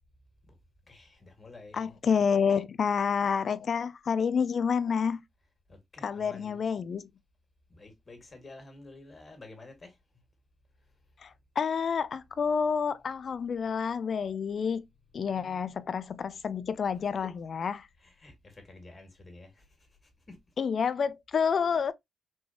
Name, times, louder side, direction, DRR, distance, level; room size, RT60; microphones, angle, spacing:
voice 1, 0.9-1.9 5.7-6.6 7.7-9.9 15.3-15.7 17.2-17.3 18.0-19.6 20.3-20.4 21.7-21.8, left 2 dB, 40° left, 2.0 m, -50 dB
voice 2, 1.7-5.2 6.0-7.1 11.2-14.9 15.1-17.9 20.6-21.9, left 6 dB, 55° left, 0.4 m, -29 dB
4.4 x 3.2 x 2.8 m
supercardioid pair, 50°, 0 cm